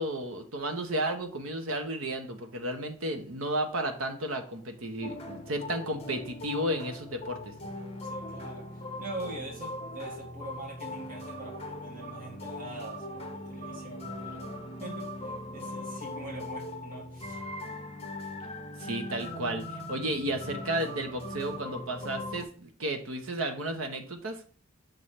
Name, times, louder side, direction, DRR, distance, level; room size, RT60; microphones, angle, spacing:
voice 1, 0.0-7.5 18.8-24.4, right 1 dB, 85° right, 5 dB, 1.1 m, -33 dB
sound 1, 5.0-22.4, left 1 dB, 30° left, 0.9 m, -40 dB
voice 2, 8.1-14.5 14.8-17.4, right 2 dB, 40° right, -3 dB, 2.1 m, -43 dB
6.5 x 3.3 x 5.7 m, 0.42 s
head